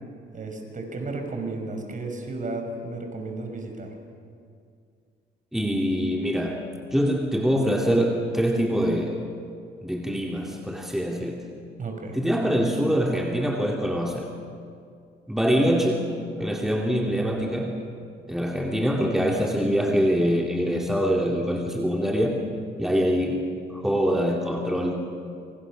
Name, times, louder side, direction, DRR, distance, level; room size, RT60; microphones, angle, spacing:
voice 1, 0.3-3.9 11.8-12.2, right 3 dB, 40° right, 3 dB, 5.6 m, -33 dB
voice 2, 5.5-6.6 6.9-9.2 9.8-11.4 12.1-14.3 15.3-16.0 16.4-17.8 18.3-22.4 22.8-23.4 23.7-24.9, equal, ahead, 0 dB, 2.4 m, -24 dB
26.0 x 25.0 x 6.3 m, 2.3 s
cardioid pair, 90°, 20 cm